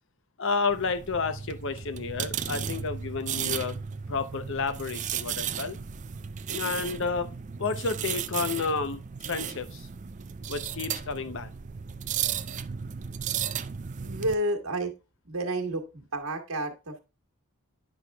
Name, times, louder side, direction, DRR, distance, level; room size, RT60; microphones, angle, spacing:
voice 1, 0.4-3.8 4.1-5.8 6.5-7.3 7.6-9.0 9.2-9.9 10.5-11.5, left 4 dB, 55° left, 0.7 m, -31 dB
sound 1, 0.7-14.3, right 8 dB, 35° right, 0.4 m, -35 dB
voice 2, 14.0-14.9 15.2-17.0, right 1 dB, 65° right, 1.6 m, -30 dB
9.7 x 5.9 x 2.3 m
head